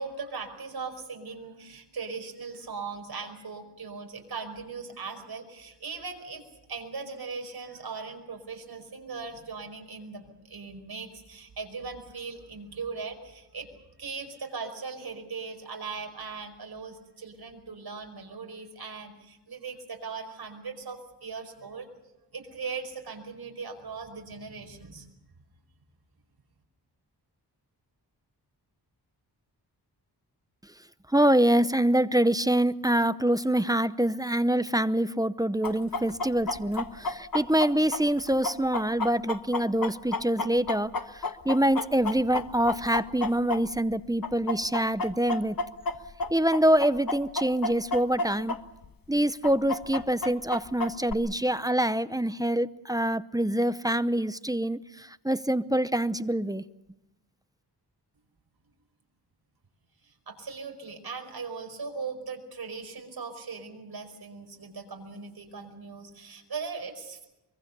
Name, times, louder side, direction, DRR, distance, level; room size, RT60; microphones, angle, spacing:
voice 1, 0.0-6.4 6.7-13.7 14.0-21.9 22.3-25.1 60.0-67.3, right 4 dB, 65° right, 4 dB, 5.2 m, -39 dB
voice 2, 31.1-45.6 46.3-48.6 49.1-56.6, right 1 dB, 10° right, 14 dB, 0.7 m, -25 dB
Chicken rooster, 35.6-43.9 44.2-48.6 48.8-48.9 49.4-51.1, left 3 dB, 55° left, 1.4 m, -31 dB
24.0 x 24.0 x 6.8 m, 0.94 s
wide cardioid pair, 95°, 41 cm